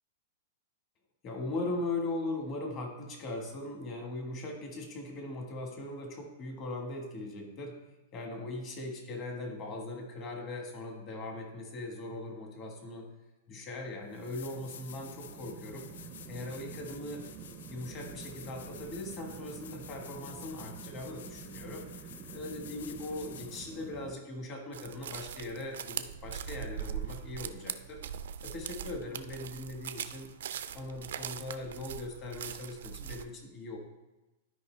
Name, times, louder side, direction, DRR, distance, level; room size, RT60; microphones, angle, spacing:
voice 1, 1.2-7.8 8.1-13.1 13.5-15.9 16.3-17.2 17.7-28.0 28.4-30.3 30.7-33.8, left 2 dB, 25° left, 2 dB, 1.4 m, -40 dB
sound 1, 13.6-13.7 14.1-23.9 26.7-26.8, left 9 dB, 75° left, 0.4 m, -51 dB
sound 2, 13.6-24.2, right 8 dB, 25° right, 0.5 m, -48 dB
sound 3, 24.7-33.2, right 9 dB, 80° right, 0.4 m, -41 dB
12.0 x 5.0 x 3.3 m, 1.1 s
supercardioid pair, 165°, 0 cm